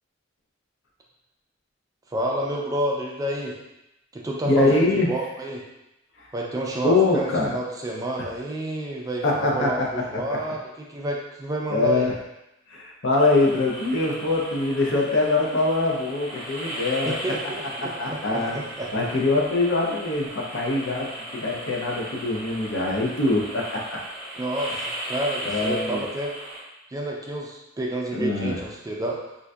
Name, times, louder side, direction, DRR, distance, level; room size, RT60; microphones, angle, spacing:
voice 1, 2.1-3.6 4.1-5.6 6.3-12.1 17.1-18.9 24.3-26.3 26.9-29.2, right 1 dB, 15° right, -2 dB, 0.3 m, -29 dB
voice 2, 4.4-5.1 6.8-7.6 9.2-10.0 10.3-10.5 11.7-12.1 12.7-17.1 17.8-18.6 18.9-24.0 25.4-26.0 28.1-28.6, left 2 dB, 60° left, -1 dB, 0.6 m, -23 dB
sound 1, 13.2-26.6, right 1 dB, 5° left, 0.9 m, -36 dB
3.7 x 2.5 x 2.2 m, 0.91 s
head